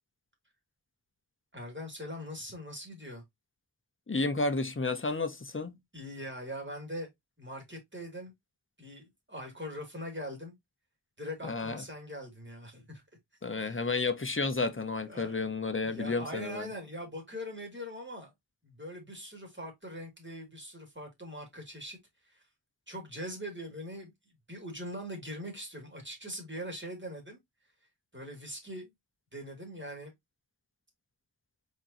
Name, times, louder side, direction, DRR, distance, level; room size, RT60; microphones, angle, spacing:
voice 1, 1.5-3.2 5.9-7.1 7.4-8.3 8.8-10.5 11.2-13.0 13.6-13.8 15.1-15.5 15.8-18.3 18.6-22.0 22.2-22.4 22.9-24.1 24.5-27.4 28.1-28.9 29.3-30.1, equal, 25° right, 2.6 m, -42 dB
voice 2, 4.1-5.8 11.4-11.8 13.4-16.7, left 3 dB, 25° left, 0.9 m, -31 dB
4.5 x 4.4 x 2.7 m
wide cardioid pair, 55°, 45 cm